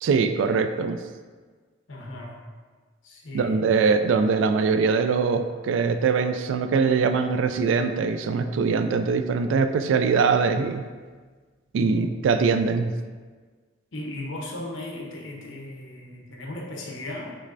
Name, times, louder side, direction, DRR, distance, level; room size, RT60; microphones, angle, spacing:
voice 1, 0.0-1.0 3.3-10.8 11.7-12.9, right 5 dB, 80° right, 8 dB, 0.3 m, -22 dB
voice 2, 1.9-2.4 3.0-3.6 11.8-12.2 13.9-17.4, left 1 dB, 90° left, 0 dB, 0.8 m, -36 dB
6.3 x 3.2 x 2.6 m, 1.5 s
head